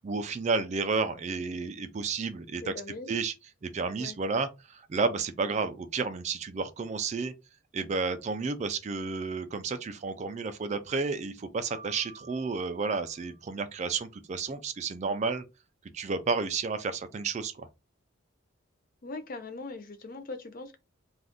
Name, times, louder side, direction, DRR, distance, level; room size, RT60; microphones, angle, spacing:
voice 1, 0.0-2.6 3.1-3.3 3.6-7.3 7.7-15.4 15.9-17.7, right 4 dB, 35° right, 0.3 m, -31 dB
voice 2, 2.6-3.1 4.0-4.2 19.0-20.8, left 3 dB, 40° left, 0.5 m, -40 dB
Piano, 11.7-13.9, right 4 dB, 75° left, 1.5 m, -52 dB
2.5 x 2.3 x 3.5 m
head